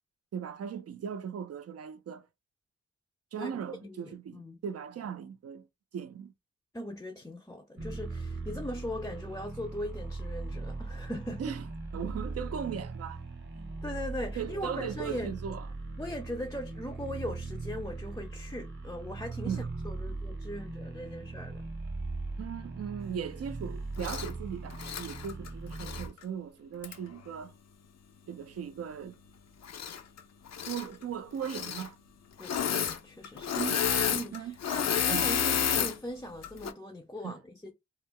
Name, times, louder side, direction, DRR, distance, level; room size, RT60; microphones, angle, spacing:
voice 1, 0.3-2.3 3.3-5.7 5.9-6.3 11.4-11.6 11.9-13.2 13.5-13.7 14.4-15.6 19.4-19.7 22.4-27.5 28.3-29.2 30.7-32.0 33.5-33.8 34.3-34.6 35.1-35.3 37.2-37.4, right 8 dB, 55° right, 0.5 m, -38 dB
voice 2, 3.8-4.6 6.7-11.4 12.0-12.1 13.8-15.3 16.0-21.6 32.4-33.7 34.1-37.7, left 1 dB, 10° left, 0.4 m, -39 dB
sound 1, 7.8-26.1, right 3 dB, 40° right, 0.8 m, -39 dB
Engine / Mechanisms, 24.0-24.3 24.7-26.1 26.8-26.9 29.6-30.2 30.5-30.9 31.4-31.9 32.4-33.0 33.2-35.9 36.4-36.7, left 8 dB, 60° left, 0.5 m, -30 dB
2.3 x 2.1 x 3.5 m
cardioid pair, 45°, 29 cm